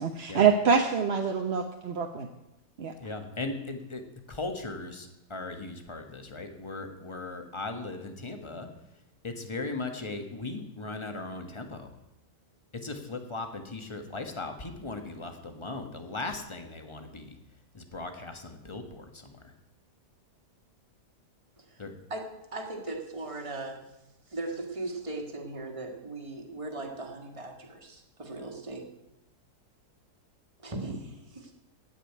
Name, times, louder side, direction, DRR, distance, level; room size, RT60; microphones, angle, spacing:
voice 1, 0.0-2.3 2.8-2.9, right 6 dB, 50° right, 4 dB, 0.9 m, -25 dB
voice 2, 3.0-4.0 4.3-8.7 9.2-11.9 12.7-17.4 17.7-19.5 21.8-21.9, left 3 dB, 20° left, 5 dB, 1.2 m, -38 dB
voice 3, 22.1-23.8 24.3-28.9 30.6-31.5, right 2 dB, 20° right, 2 dB, 1.7 m, -38 dB
15.5 x 5.2 x 9.5 m, 0.92 s
omnidirectional pair, 1.8 m